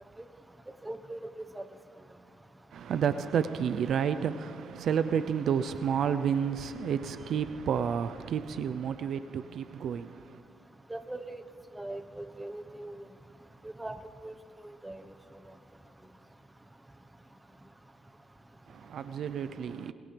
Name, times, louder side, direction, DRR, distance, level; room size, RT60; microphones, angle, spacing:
voice 1, 0.8-1.6 10.9-11.4 11.7-13.0 13.6-14.0 14.2-14.3 14.8-15.0, right 2 dB, 15° right, 1.2 m, -40 dB
voice 2, 2.7-10.4 18.7-19.9, right 7 dB, 65° right, 0.7 m, -30 dB
29.5 x 27.5 x 3.5 m
cardioid pair, 90°, 0 cm